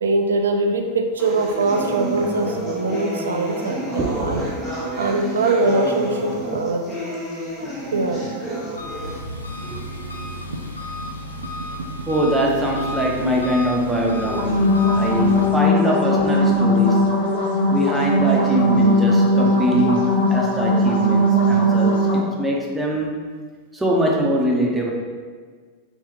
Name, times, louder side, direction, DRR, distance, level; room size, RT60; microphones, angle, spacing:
voice 1, 0.0-4.4 5.0-6.9 7.9-8.2 9.1-9.2 9.7-9.8 10.5-10.6, right 3 dB, 70° right, 5 dB, 0.4 m, -22 dB
sound 1, 1.2-9.2, right 1 dB, 25° left, 0.8 m, -29 dB
voice 2, 4.0-4.5 9.6-9.8 10.1-10.3 12.1-17.0 17.7-23.1 23.7-24.9, equal, 10° right, -1 dB, 0.7 m, -23 dB
Engine, 8.7-15.5, left 1 dB, 80° left, 0.4 m, -32 dB
sound 2, 14.2-22.2, equal, 65° left, 1.3 m, -18 dB
3.5 x 3.0 x 3.4 m, 1.5 s
figure-of-eight pair, 90°, 0 cm